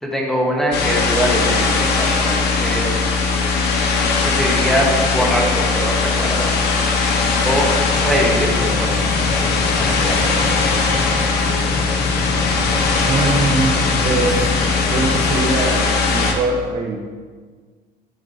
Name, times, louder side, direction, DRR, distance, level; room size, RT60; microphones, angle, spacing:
voice 1, 0.0-3.0 4.2-6.5 7.4-10.5, equal, ahead, -1 dB, 1.4 m, -23 dB
sound 1, 0.7-16.3, left 4 dB, 75° left, 1.1 m, -19 dB
sound 2, 7.0-15.4, left 3 dB, 30° left, 1.2 m, -29 dB
voice 2, 13.0-17.0, right 3 dB, 55° right, 1 dB, 1.2 m, -22 dB
8.9 x 7.3 x 2.8 m, 1.5 s
cardioid pair, 110°, 17 cm